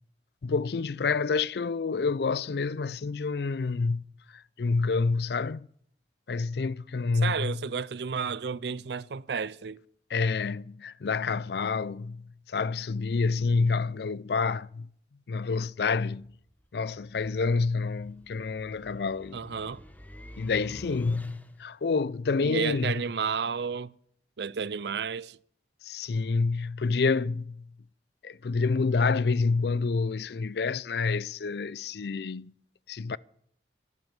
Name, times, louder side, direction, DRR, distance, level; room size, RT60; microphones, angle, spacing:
voice 1, 0.4-4.0 4.6-5.7 6.3-7.6 10.1-14.9 15.3-16.3 16.7-19.4 20.4-22.9 25.8-27.6 28.2-32.5 32.9-33.2, left 4 dB, 65° left, 0.4 m, -28 dB
voice 2, 7.2-9.8 19.3-19.8 22.4-23.9 24.4-25.4, right 6 dB, 70° right, 0.5 m, -32 dB
sound 1, 16.2-21.8, equal, 10° left, 1.0 m, -49 dB
12.0 x 11.0 x 7.0 m
head